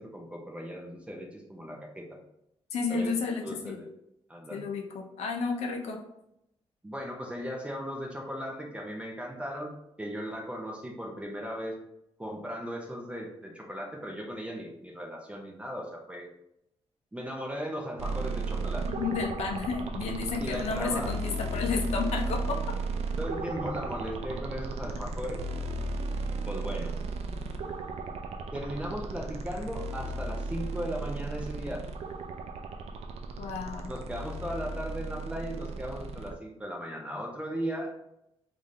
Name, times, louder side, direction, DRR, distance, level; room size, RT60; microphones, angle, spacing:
voice 1, 0.0-2.1 2.9-3.1 3.4-3.9 4.3-4.6 6.8-9.7 10.0-11.8 12.2-16.3 17.1-18.9 20.4-21.1 23.2-25.4 26.5-26.9 28.5-31.8 33.9-37.9, equal, 10° right, 0 dB, 0.6 m, -37 dB
voice 2, 2.7-3.8 4.5-6.0 18.9-22.7 33.4-33.9, left 4 dB, 90° left, 4 dB, 0.6 m, -32 dB
sound 1, 18.0-36.3, right 3 dB, 75° right, 0.4 m, -35 dB
3.7 x 2.6 x 3.1 m, 0.82 s
cardioid pair, 105°, 11 cm